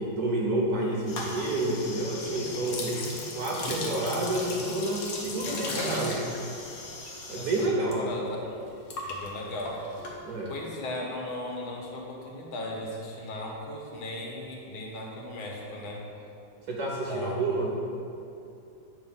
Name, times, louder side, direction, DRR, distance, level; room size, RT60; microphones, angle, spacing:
voice 1, 0.0-3.0 3.4-6.2 7.3-8.0 10.2-10.5 16.7-17.7, right 2 dB, 65° right, -2 dB, 1.0 m, -29 dB
sound 1, 1.0-10.6, left 2 dB, 55° left, 1.1 m, -37 dB
voice 2, 7.3-8.5 9.1-9.9 10.5-16.0 17.1-17.6, left 1 dB, 80° left, -1 dB, 1.7 m, -37 dB
8.7 x 3.1 x 5.4 m, 2.6 s
omnidirectional pair, 2.2 m